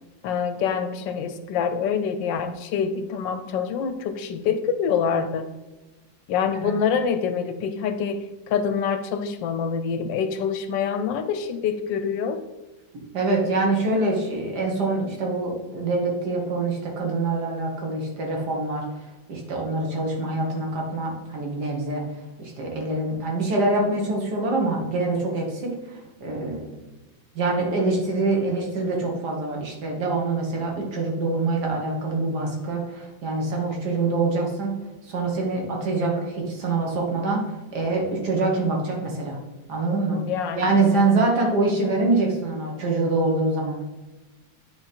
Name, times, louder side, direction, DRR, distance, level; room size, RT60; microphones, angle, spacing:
voice 1, 0.2-5.5 6.3-12.4 40.1-41.1, left 6 dB, 80° left, 10 dB, 1.2 m, -26 dB
voice 2, 13.1-18.8 19.3-22.0 22.4-26.6 27.3-34.8 35.0-37.4 37.7-39.4 39.7-40.2 40.6-43.8, right 3 dB, 60° right, 0 dB, 2.0 m, -25 dB
9.6 x 3.8 x 4.4 m, 1.1 s
omnidirectional pair, 2.1 m